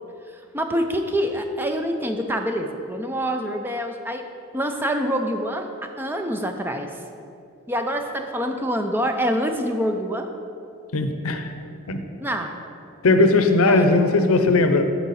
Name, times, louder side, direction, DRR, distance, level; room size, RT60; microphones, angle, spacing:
voice 1, 0.5-4.3 4.5-5.7 6.0-6.9 7.7-10.3 12.2-12.6 13.7-13.9, equal, 10° right, 5 dB, 0.4 m, -26 dB
voice 2, 10.9-11.5 11.9-12.0 13.0-14.8, left 2 dB, 75° left, 7 dB, 0.7 m, -18 dB
13.0 x 4.8 x 4.2 m, 2.6 s
head